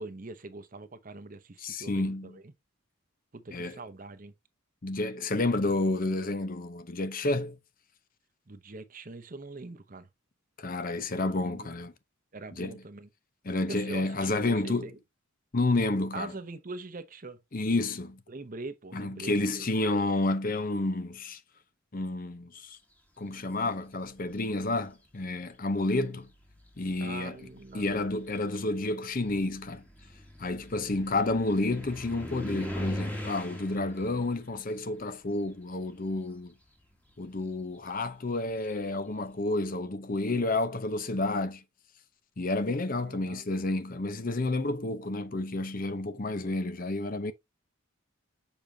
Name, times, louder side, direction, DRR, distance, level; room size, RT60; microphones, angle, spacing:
voice 1, 0.0-2.5 3.3-4.3 8.5-10.1 11.0-11.7 12.3-13.1 13.7-15.0 16.1-17.4 18.3-19.7 27.0-28.1 43.0-43.5, right 3 dB, 40° right, 0.8 m, -43 dB
voice 2, 1.6-2.4 3.5-3.8 4.8-7.6 10.6-11.9 12.6-12.8 13.5-14.9 15.5-16.3 17.5-18.2 18.9-21.4 21.9-22.8 23.2-26.3 26.8-27.3 27.7-29.8 30.4-36.5 37.2-41.6 42.4-47.3, left 2 dB, 40° left, 0.7 m, -30 dB
sound 1, 24.1-24.6 25.6-25.7 26.3-36.2 36.5-39.1, equal, 5° left, 1.4 m, -42 dB
7.0 x 5.2 x 2.8 m
head